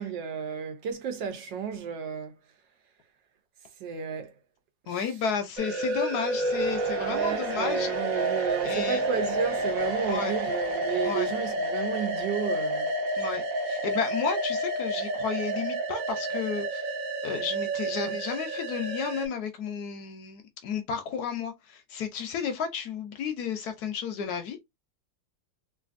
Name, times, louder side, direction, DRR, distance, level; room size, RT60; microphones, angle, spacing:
voice 1, 0.0-2.3 3.8-4.3 7.0-12.9, right 7 dB, 75° right, 1.4 m, -32 dB
voice 2, 4.9-7.9 8.6-9.0 10.1-10.3 11.0-11.3 13.1-16.9 17.2-24.6, left 6 dB, 70° left, 1.0 m, -32 dB
sound 1, 5.6-19.3, right 2 dB, 55° right, 1.2 m, -30 dB
3.2 x 2.6 x 2.4 m
omnidirectional pair, 2.0 m